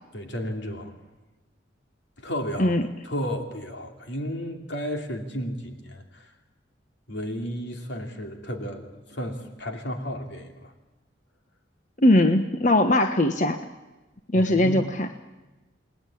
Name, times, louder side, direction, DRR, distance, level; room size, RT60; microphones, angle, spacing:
voice 1, 0.1-1.0 2.2-2.8 3.0-6.3 7.1-10.7 14.3-14.8, equal, 65° left, 4 dB, 2.9 m, -33 dB
voice 2, 12.0-13.6 14.3-15.1, left 1 dB, 40° left, 7 dB, 1.2 m, -20 dB
29.0 x 20.5 x 8.6 m, 1.1 s
head